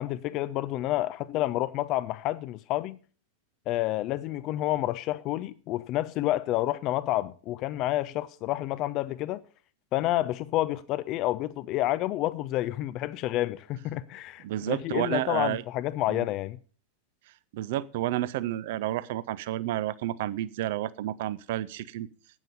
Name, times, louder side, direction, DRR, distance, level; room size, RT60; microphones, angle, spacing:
voice 1, 0.0-3.0 3.7-9.4 9.9-16.6, left 15 dB, 40° left, 0.5 m, -29 dB
voice 2, 14.4-15.6 16.1-16.3 17.5-22.1, right 14 dB, 50° right, 0.6 m, -30 dB
12.0 x 9.1 x 5.4 m
figure-of-eight pair, 90°, 0 cm